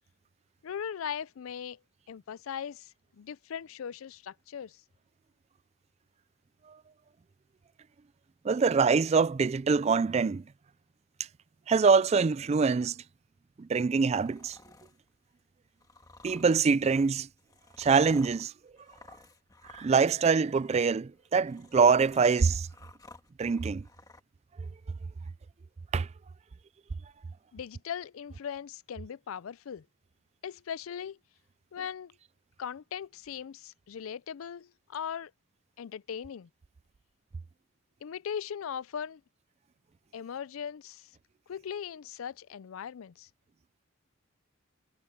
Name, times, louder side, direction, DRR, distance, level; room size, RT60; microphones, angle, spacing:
voice 1, 0.6-1.8 2.1-4.8 27.5-29.9 30.4-31.2 31.7-32.1 32.6-35.3 35.8-36.5 38.0-39.2 40.1-41.1 41.5-43.3, left 8 dB, 80° left, 0.4 m, -39 dB
voice 2, 8.4-10.4 11.7-13.0 13.6-14.6 16.2-17.3 17.8-18.5 19.7-22.7 23.4-23.8 25.9-26.1, right 5 dB, 30° right, 0.3 m, -24 dB
sound 1, 14.1-15.0 15.8-20.1 20.3-20.8 21.2-24.2, left 2 dB, 20° left, 1.6 m, -54 dB
head